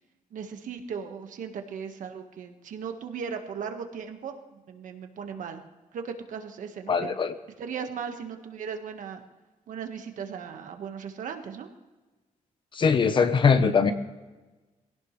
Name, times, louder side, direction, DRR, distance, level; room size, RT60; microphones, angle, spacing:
voice 1, 0.3-5.6 5.9-7.1 7.6-9.2 9.7-11.7, right 6 dB, 80° right, 5 dB, 1.5 m, -37 dB
voice 2, 6.9-7.4 12.7-13.9, left 5 dB, 40° left, 10 dB, 0.9 m, -21 dB
23.0 x 17.0 x 3.3 m, 1.2 s
wide cardioid pair, 160°, 13 cm